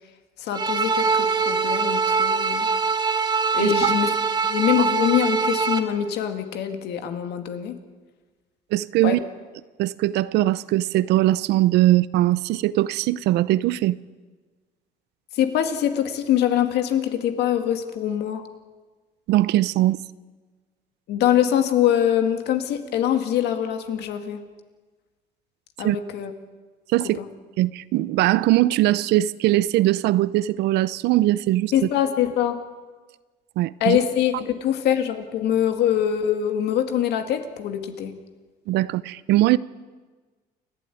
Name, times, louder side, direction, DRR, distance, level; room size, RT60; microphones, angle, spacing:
voice 1, 0.4-2.7 3.5-4.1 4.4-7.7 9.0-9.2 15.3-18.4 21.1-24.4 25.8-26.3 27.2-27.3 31.7-32.6 33.8-38.1, left 10 dB, 80° left, 2.2 m, -23 dB
sound 1, 0.5-5.8, right 5 dB, 25° right, 1.9 m, -23 dB
voice 2, 3.6-3.9 8.7-9.2 9.8-14.0 19.3-20.0 25.8-26.0 26.9-27.2 27.6-31.7 33.6-34.0 38.7-39.6, right 15 dB, 85° right, 0.7 m, -20 dB
29.0 x 12.0 x 9.3 m
cardioid pair, 110°, 17 cm